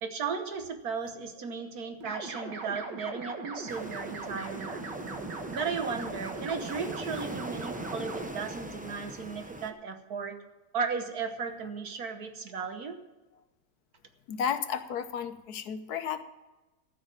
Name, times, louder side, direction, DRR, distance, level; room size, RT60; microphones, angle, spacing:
voice 1, 0.0-4.8 5.5-10.4 10.7-13.0, right 5 dB, 65° right, 7 dB, 1.5 m, -35 dB
sound 1, 2.0-8.3, right 4 dB, 80° right, 2.3 m, -39 dB
sound 2, 3.7-9.7, right 1 dB, 10° right, 0.4 m, -42 dB
voice 2, 14.3-16.2, left 8 dB, 65° left, 10 dB, 1.4 m, -33 dB
14.0 x 6.3 x 8.9 m, 1.1 s
omnidirectional pair, 1.9 m